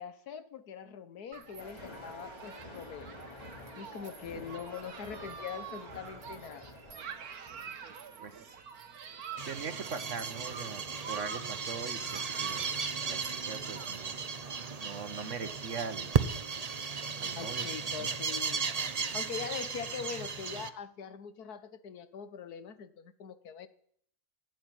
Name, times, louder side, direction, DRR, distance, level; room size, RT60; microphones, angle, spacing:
voice 1, 0.0-3.5 3.8-6.7 17.3-18.6 19.1-23.7, left 7 dB, 90° left, 1.6 m, -43 dB
Human group actions, 1.3-14.0, right 7 dB, 75° right, 1.7 m, -47 dB
sound 1, 1.6-8.7, left 1 dB, 15° left, 3.0 m, -50 dB
voice 2, 8.2-8.6 9.0-9.2 9.4-12.8 13.1-14.2 14.8-16.1 17.2-18.2, right 5 dB, 55° right, 1.5 m, -42 dB
sound 2, 9.4-20.7, right 5 dB, 35° right, 0.7 m, -35 dB
15.5 x 9.4 x 9.1 m
omnidirectional pair, 1.6 m